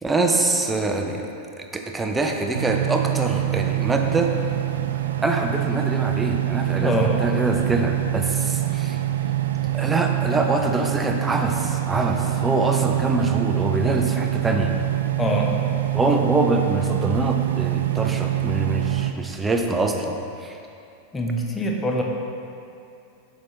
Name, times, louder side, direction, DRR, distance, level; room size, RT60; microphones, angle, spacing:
voice 1, 0.0-1.3 1.6-4.3 5.2-9.0 9.7-14.7 15.9-20.2 20.4-20.6, right 2 dB, 10° right, 3 dB, 0.6 m, -24 dB
sound 1, 2.5-19.1, right 14 dB, 65° right, 0.3 m, -25 dB
voice 2, 6.8-7.1 15.2-15.5 21.1-22.0, equal, 15° left, 0 dB, 0.9 m, -23 dB
8.2 x 5.8 x 3.2 m, 2.6 s
figure-of-eight pair, 90°, 0 cm